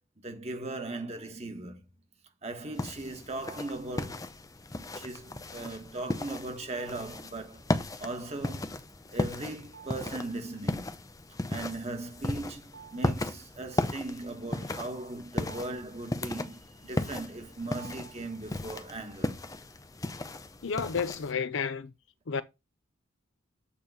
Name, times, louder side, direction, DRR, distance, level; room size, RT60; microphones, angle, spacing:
voice 1, 0.2-1.8 2.4-4.3 4.8-7.6 8.0-8.8 9.1-10.9 11.5-19.4, right 2 dB, 30° right, 1.2 m, -38 dB
sound 1, 2.7-21.3, left 2 dB, 15° left, 0.5 m, -36 dB
sound 2, 3.4-4.1 6.7-7.4 9.6-10.4 10.7-10.8 12.3-13.8 14.7-18.7, right 7 dB, 65° right, 4.1 m, -54 dB
voice 2, 20.6-21.9 22.3-22.4, left 6 dB, 60° left, 0.5 m, -31 dB
8.5 x 3.0 x 5.3 m
head